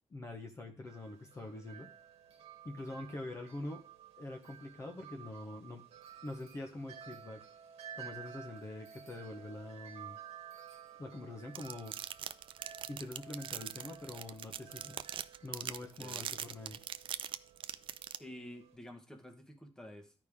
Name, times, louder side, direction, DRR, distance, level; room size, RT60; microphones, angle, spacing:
voice 1, 0.1-1.9 2.6-3.8 4.2-5.8 6.2-7.4 7.9-10.2 11.0-12.0 12.9-15.0 15.4-16.8, left 2 dB, 30° left, 3 dB, 1.0 m, -44 dB
Wind chime, 0.9-18.8, right 8 dB, 80° right, 1.2 m, -53 dB
sound 1, 11.5-18.2, right 9 dB, 55° right, 0.4 m, -41 dB
voice 2, 15.8-16.3 18.2-20.1, left 1 dB, 5° left, 4 dB, 1.3 m, -50 dB
12.5 x 5.1 x 3.6 m, 0.36 s
cardioid pair, 120°, 10 cm